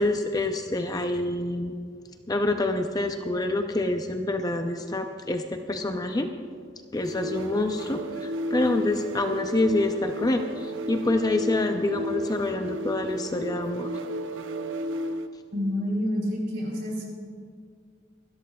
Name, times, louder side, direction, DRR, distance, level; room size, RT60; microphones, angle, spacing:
voice 1, 0.0-1.7 2.3-6.3 6.9-13.9, left 2 dB, 20° left, 6 dB, 0.5 m, -27 dB
sound 1, 7.0-15.4, equal, 85° right, 0.6 m, -33 dB
voice 2, 15.5-17.0, equal, 55° right, -1 dB, 3.7 m, -28 dB
25.5 x 12.5 x 2.3 m, 2.2 s
head